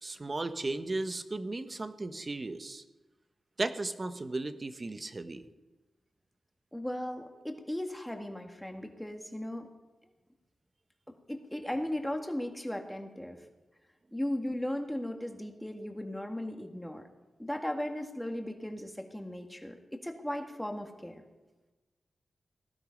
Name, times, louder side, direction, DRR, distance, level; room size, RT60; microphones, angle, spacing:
voice 1, 0.0-2.8 3.6-5.4, right 2 dB, 35° right, 9 dB, 1.1 m, -35 dB
voice 2, 6.7-9.7 11.3-13.5 14.1-17.0 17.4-21.2, left 1 dB, 5° left, 4 dB, 1.9 m, -37 dB
18.5 x 11.5 x 5.3 m, 1.2 s
cardioid pair, 75°, 0 cm